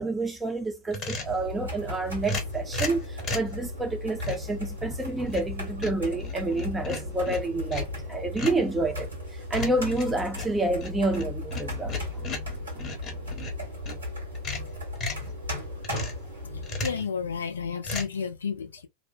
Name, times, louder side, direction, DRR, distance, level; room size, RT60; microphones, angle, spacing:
voice 1, 0.0-9.1 9.5-12.9, right 2 dB, 10° right, 0.6 m, -29 dB
sound 1, 0.9-1.4 2.2-3.6 4.2-4.5 5.0-5.5 5.8-8.0 8.4-8.7 9.6-14.0 14.3-15.3 15.8-16.3 16.6-17.1 17.8-18.1, left 3 dB, 30° left, 0.9 m, -35 dB
sound 2, 1.2-17.0, left 1 dB, 80° right, 1.4 m, -36 dB
voice 2, 16.4-18.9, left 6 dB, 70° left, 0.4 m, -32 dB
2.7 x 2.1 x 2.6 m
figure-of-eight pair, 90°, 0 cm